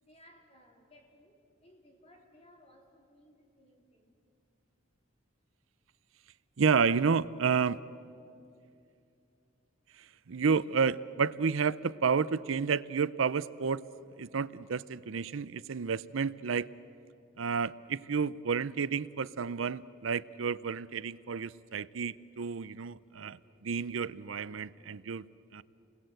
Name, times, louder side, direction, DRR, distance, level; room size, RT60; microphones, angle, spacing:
voice 1, 0.0-4.1 22.3-22.4 22.7-23.6 25.3-25.4, left 1 dB, 30° left, 1 dB, 3.4 m, -62 dB
voice 2, 6.6-7.8 10.3-13.8 14.2-16.7 17.4-25.2 25.5-25.6, right 5 dB, 70° right, 17 dB, 0.6 m, -30 dB
29.0 x 21.0 x 7.9 m, 2.6 s
head